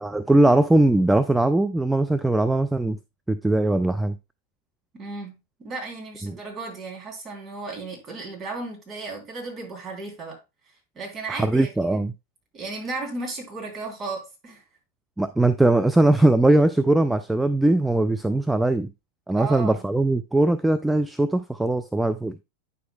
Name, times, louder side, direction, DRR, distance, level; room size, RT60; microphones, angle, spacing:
voice 1, 0.0-3.0 3.3-4.1 6.2-6.3 11.3-12.1 15.2-18.9 19.3-22.4, right 2 dB, 5° right, 0.4 m, -20 dB
voice 2, 4.9-10.4 10.9-12.0 12.5-14.6 19.3-19.8, right 3 dB, 25° right, 3.2 m, -35 dB
9.4 x 6.0 x 2.3 m
figure-of-eight pair, 90°, 0 cm